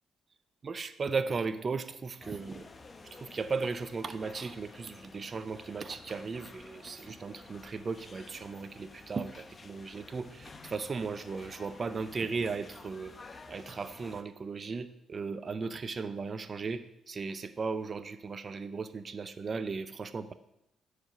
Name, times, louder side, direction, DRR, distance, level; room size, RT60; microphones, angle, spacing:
voice 1, 0.6-2.7 3.1-13.1 13.5-20.3, right 4 dB, 40° right, 11 dB, 0.5 m, -36 dB
sound 1, 2.2-14.2, left 3 dB, 30° left, 0.7 m, -52 dB
8.7 x 4.8 x 6.6 m, 0.83 s
cardioid pair, 90°, 0 cm